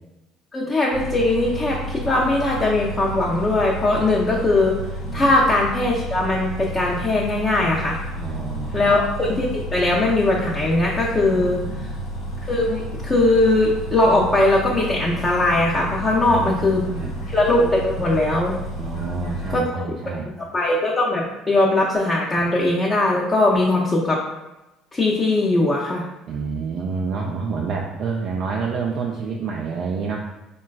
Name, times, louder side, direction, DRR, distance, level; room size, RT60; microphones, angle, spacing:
voice 1, 0.5-4.8 5.1-8.0 8.7-11.6 12.4-16.8 17.3-18.5 19.5-19.9 20.5-24.2 24.9-26.0, left 2 dB, 30° left, -4 dB, 0.5 m, -20 dB
Bus, 0.9-19.6, right 1 dB, 85° left, 0.7 m, -31 dB
voice 2, 5.0-5.3 8.1-8.9 11.3-12.0 16.2-17.2 18.8-20.3 26.3-30.3, right 5 dB, 60° right, -1 dB, 0.3 m, -28 dB
3.7 x 2.2 x 2.3 m, 0.98 s
supercardioid pair, 75°, 0 cm